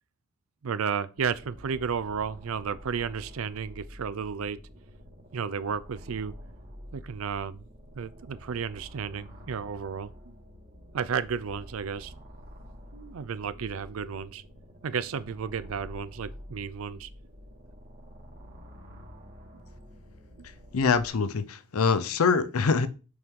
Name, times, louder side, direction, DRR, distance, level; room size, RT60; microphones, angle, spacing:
voice 1, 0.6-4.6 5.3-6.3 6.9-7.6 7.9-10.3 10.9-12.1 12.9-14.4 14.8-17.1, right 6 dB, 70° right, 0.5 m, -33 dB
sound 1, 1.2-21.1, equal, 50° right, 1.8 m, -48 dB
voice 2, 20.7-22.9, left 5 dB, 85° left, 0.6 m, -24 dB
6.2 x 4.6 x 3.6 m
head